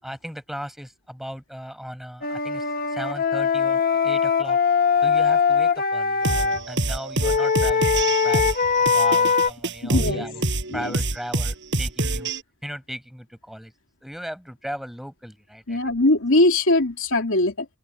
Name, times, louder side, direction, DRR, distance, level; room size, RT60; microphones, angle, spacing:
voice 1, 0.0-4.6 5.0-6.3 6.7-10.4 10.7-12.3 12.6-13.7 14.0-15.8, equal, ahead, 6.1 m, -37 dB
Wind instrument woodwind instrument, 2.2-6.6 7.2-9.5, left 6 dB, 40° left, 1.2 m, -21 dB
sound 1, 6.2-12.4, right 2 dB, 55° right, 6.9 m, -26 dB
voice 2, 9.8-10.3 10.7-10.9 15.7-17.7, left 2 dB, 60° left, 3.0 m, -21 dB
open air
head